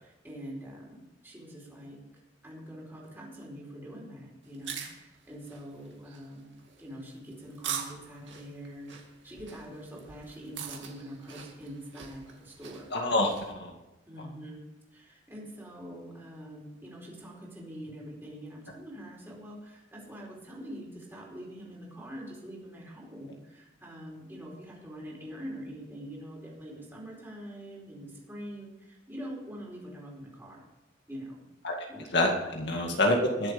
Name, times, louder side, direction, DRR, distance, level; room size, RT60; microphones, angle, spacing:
voice 1, 0.0-2.0 2.4-6.5 6.8-12.9 14.1-14.6 14.9-30.6 31.1-31.4 31.9-32.1 32.7-32.9, equal, 10° right, -4 dB, 4.6 m, -44 dB
sound 1, 4.4-13.5, right 7 dB, 70° right, 2.3 m, -43 dB
voice 2, 12.9-13.7 31.6-31.8 32.1-33.5, left 1 dB, 60° left, 1 dB, 2.1 m, -26 dB
21.5 x 7.8 x 5.2 m, 1.0 s
head